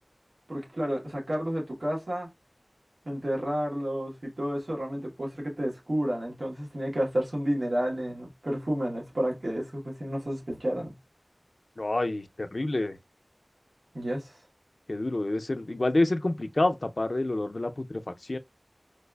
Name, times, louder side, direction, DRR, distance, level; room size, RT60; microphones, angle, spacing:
voice 1, 0.5-2.3 3.0-10.9 13.9-14.4, equal, 90° right, 1.2 m, -31 dB
voice 2, 11.8-13.0 14.9-18.4, left 2 dB, 70° left, 0.4 m, -28 dB
4.6 x 2.4 x 2.2 m
wide cardioid pair, 45°, 0 cm